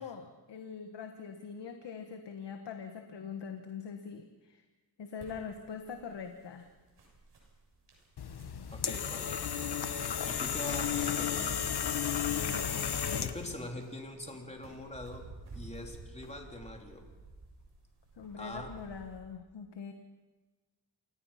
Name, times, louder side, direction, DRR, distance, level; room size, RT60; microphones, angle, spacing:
voice 1, 0.0-4.6 5.0-6.7 18.2-19.9, left 6 dB, 85° left, 6 dB, 1.5 m, -43 dB
sound 1, 5.2-19.2, right 3 dB, 85° right, 7.3 m, -52 dB
sound 2, 8.2-13.6, left 8 dB, 70° left, 1.3 m, -33 dB
voice 2, 8.7-9.4 10.3-11.7 13.2-15.3 15.5-17.1 18.4-18.7, left 1 dB, 15° left, 2 dB, 3.7 m, -43 dB
28.5 x 18.0 x 5.8 m, 1.3 s
wide cardioid pair, 90°, 41 cm